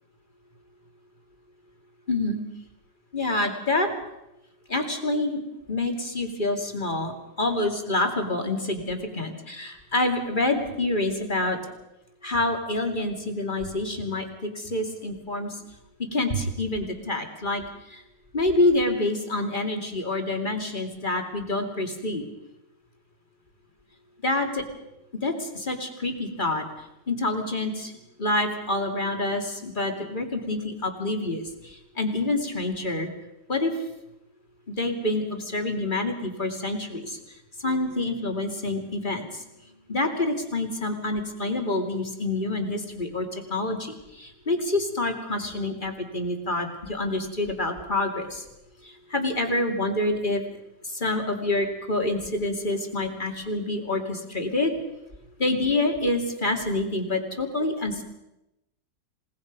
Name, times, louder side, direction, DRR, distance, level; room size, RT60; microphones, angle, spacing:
voice 1, 2.1-2.4 3.1-3.9 4.7-5.4 5.7-11.6 12.2-15.5 16.0-17.6 17.9-18.0 18.3-22.2 24.2-24.6 25.2-26.6 27.1-27.9 28.2-33.1 33.5-33.7 34.7-37.2 37.6-39.4 39.9-48.4 48.8-50.4 50.9-54.7 55.4-58.0, left 2 dB, 25° left, 4 dB, 2.7 m, -27 dB
28.0 x 18.5 x 5.3 m, 0.93 s
omnidirectional pair, 1.9 m